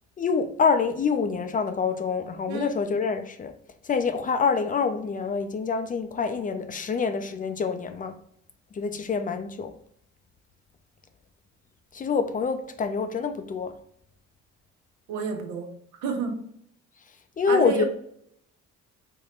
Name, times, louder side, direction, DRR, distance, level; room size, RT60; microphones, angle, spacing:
voice 1, 0.2-3.5 3.8-8.1 8.7-9.7 11.9-13.7 17.4-17.9, left 5 dB, 30° left, 0.4 m, -26 dB
voice 2, 15.1-15.7 16.0-16.5 17.5-17.9, right 5 dB, 85° right, 0.8 m, -30 dB
3.5 x 2.1 x 3.7 m
cardioid pair, 105°, 29 cm